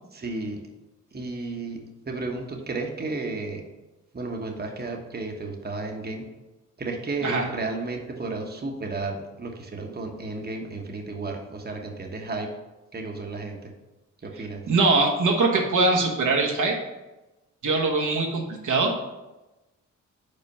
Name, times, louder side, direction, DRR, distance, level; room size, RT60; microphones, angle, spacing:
voice 1, 0.1-0.6 1.1-3.6 4.1-6.3 6.8-12.5 12.9-13.7 14.2-14.6, right 3 dB, 30° right, 2 dB, 1.1 m, -33 dB
voice 2, 14.7-16.8 17.6-18.9, right 3 dB, 70° right, -1 dB, 1.2 m, -22 dB
5.3 x 4.2 x 5.4 m, 1.0 s
cardioid pair, 55°, 31 cm